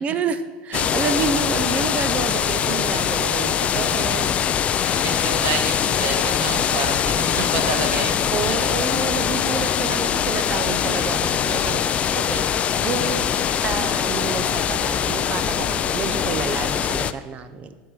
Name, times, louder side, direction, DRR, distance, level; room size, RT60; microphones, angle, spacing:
voice 1, 0.0-4.3 8.3-12.5 12.8-13.3 13.6-17.8, right 6 dB, 30° right, 11 dB, 0.7 m, -29 dB
sound 1, 0.7-17.1, left 8 dB, 30° left, 0.4 m, -22 dB
voice 2, 0.7-1.2 1.8-1.9 2.9-3.0 3.6-3.8 4.1-4.3 4.6-8.8, right 4 dB, 50° right, 4 dB, 1.7 m, -30 dB
11.5 x 4.7 x 7.6 m, 1.5 s
supercardioid pair, 145°, 5 cm